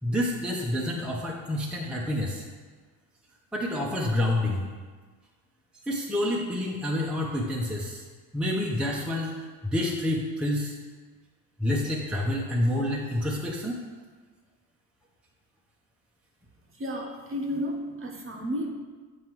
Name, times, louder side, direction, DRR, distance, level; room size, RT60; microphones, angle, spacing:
voice 1, 0.0-2.4 3.5-4.6 5.9-8.0 8.3-10.8 11.6-13.8, left 1 dB, ahead, -3 dB, 0.8 m, -28 dB
voice 2, 16.7-18.7, equal, 25° right, 0 dB, 1.0 m, -32 dB
7.4 x 4.7 x 3.1 m, 1.4 s
hypercardioid pair, 70°, 48 cm